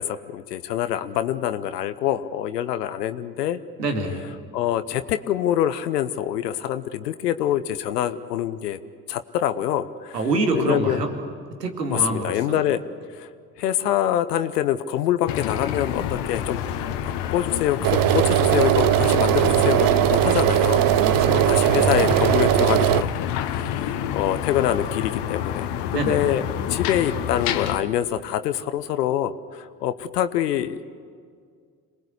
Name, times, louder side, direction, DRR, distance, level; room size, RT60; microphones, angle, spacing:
voice 1, 0.0-3.6 4.5-8.8 9.1-10.2 10.5-11.0 11.9-12.8 13.1-13.3 13.6-16.6 17.0-20.9 21.3-26.4 26.7-30.8, left 11 dB, 80° left, 11 dB, 1.0 m, -25 dB
voice 2, 3.8-4.2 10.1-11.1 11.6-12.6 21.0-22.0 25.9-26.3, right 2 dB, 90° right, 4 dB, 2.4 m, -26 dB
sound 1, 15.3-27.8, left 10 dB, 60° left, 1.5 m, -29 dB
sound 2, 17.8-23.0, right 15 dB, 45° right, 0.7 m, -19 dB
27.0 x 20.0 x 8.2 m, 2.1 s
hypercardioid pair, 60°, 47 cm